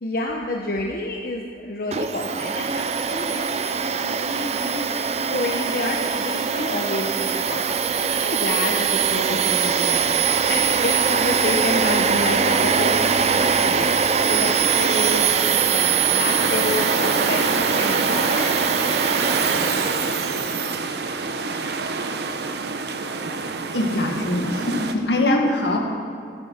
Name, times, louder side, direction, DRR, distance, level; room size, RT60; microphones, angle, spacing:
voice 1, 0.0-4.9 5.3-10.2 10.5-15.3 15.7-18.5, left 2 dB, 55° left, 1 dB, 0.9 m, -29 dB
Domestic sounds home sounds, 1.9-20.8, right 6 dB, 35° right, 0.5 m, -22 dB
sound 1, 14.3-24.9, right 4 dB, 70° right, 0.9 m, -26 dB
voice 2, 23.7-25.8, left 1 dB, 75° left, 1 dB, 1.9 m, -22 dB
14.0 x 12.5 x 5.8 m, 2.2 s
head